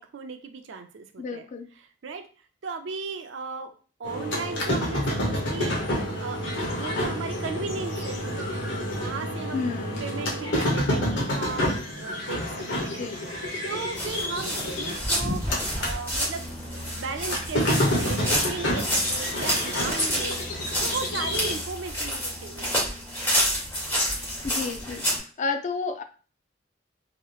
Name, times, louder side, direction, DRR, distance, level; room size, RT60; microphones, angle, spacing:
voice 1, 0.0-1.5 2.0-2.2 2.6-3.7 4.0-9.6 10.0-13.1 13.6-16.5 16.9-22.9, right 4 dB, 85° right, 7 dB, 0.5 m, -36 dB
voice 2, 1.2-1.7 9.5-10.0 13.0-13.2 24.4-25.0 25.4-26.0, left 4 dB, 40° left, 7 dB, 0.4 m, -31 dB
sound 1, 4.0-16.0 16.3-21.5, left 1 dB, 80° left, 0.9 m, -29 dB
sound 2, 13.9-25.2, equal, 15° left, 1.4 m, -29 dB
2.9 x 2.9 x 2.3 m, 0.38 s
head